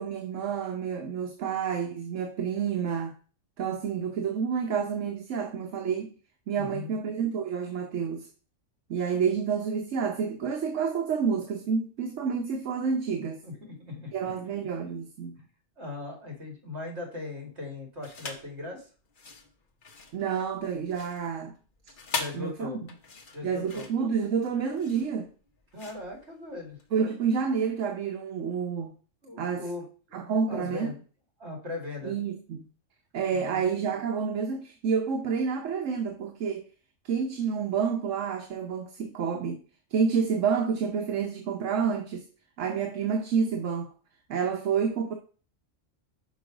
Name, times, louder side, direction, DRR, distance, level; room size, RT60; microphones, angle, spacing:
voice 1, 0.0-3.1 3.6-6.1 6.5-8.3 8.9-13.4 14.1-15.4 20.1-21.5 22.3-22.7 23.4-25.3 26.9-28.9 29.4-29.6 30.1-30.9 32.0-32.6 33.1-36.7 37.0-39.6 39.9-42.2 42.6-43.9 44.3-45.1, right 6 dB, 75° right, 1.2 m, -29 dB
voice 2, 6.6-7.0 13.4-14.7 15.4-15.5 15.8-18.9 22.1-22.8 23.3-23.9 25.7-26.8 29.2-30.2 30.5-31.0 31.4-32.2 33.3-33.8, left 3 dB, 60° right, 2.6 m, -39 dB
sound 1, 18.0-18.5 19.1-26.9, left 4 dB, 45° left, 1.1 m, -40 dB
6.2 x 4.9 x 4.9 m
omnidirectional pair, 1.3 m